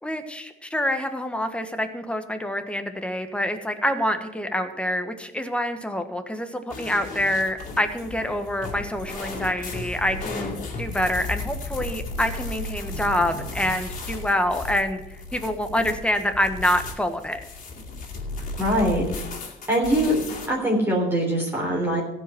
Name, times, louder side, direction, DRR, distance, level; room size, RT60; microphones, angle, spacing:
voice 1, 0.0-17.4, left 1 dB, 5° left, 7 dB, 1.4 m, -26 dB
sound 1, 6.7-20.5, left 3 dB, 50° left, 2.8 m, -35 dB
voice 2, 18.6-19.1 19.7-20.2 20.5-22.0, equal, 15° right, -3 dB, 3.5 m, -22 dB
15.0 x 5.4 x 9.3 m, 0.90 s
cardioid pair, 110°, 17 cm